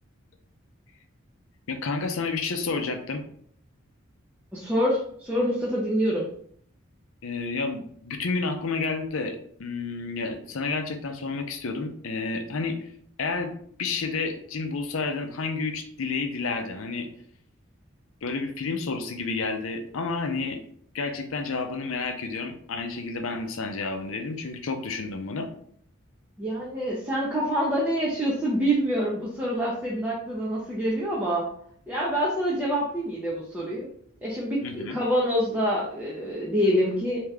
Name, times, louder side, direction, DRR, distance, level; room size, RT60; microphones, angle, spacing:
voice 1, 1.7-3.2 7.2-12.9 13.2-13.5 13.8-17.1 18.2-20.6 20.9-25.5 34.6-35.0, left 4 dB, 75° left, 5 dB, 0.6 m, -30 dB
voice 2, 4.5-6.3 26.4-31.5 31.9-33.9 34.2-37.2, equal, 10° right, -6 dB, 0.6 m, -26 dB
3.5 x 2.8 x 3.3 m, 0.62 s
head